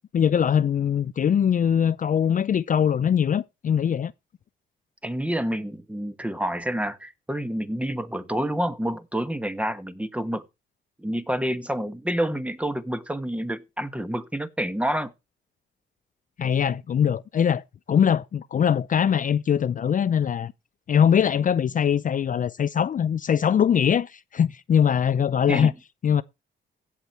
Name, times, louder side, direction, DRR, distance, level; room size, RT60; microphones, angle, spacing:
voice 1, 0.1-4.1 16.4-17.6 17.9-20.5 20.9-25.7 26.0-26.2, left 8 dB, 40° left, 0.5 m, -22 dB
voice 2, 5.0-10.4 11.0-15.1 25.5-25.7, equal, 5° right, 1.2 m, -28 dB
16.0 x 7.1 x 4.5 m
cardioid pair, 90°, 20 cm